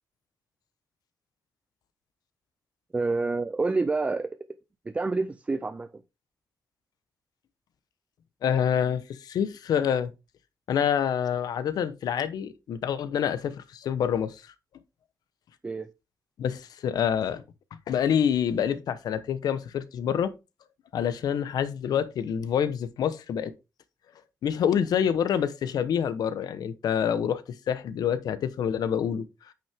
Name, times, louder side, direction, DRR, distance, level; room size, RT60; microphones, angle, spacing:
voice 1, 2.9-4.3 4.9-5.9 15.6-15.9, right 3 dB, 20° right, 0.4 m, -27 dB
voice 2, 8.4-10.1 10.7-14.4 16.4-17.4 17.9-20.3 20.9-23.5 24.4-27.4 27.7-29.2, left 8 dB, 70° left, 0.9 m, -27 dB
8.8 x 5.8 x 3.5 m
wide cardioid pair, 150°, 7 cm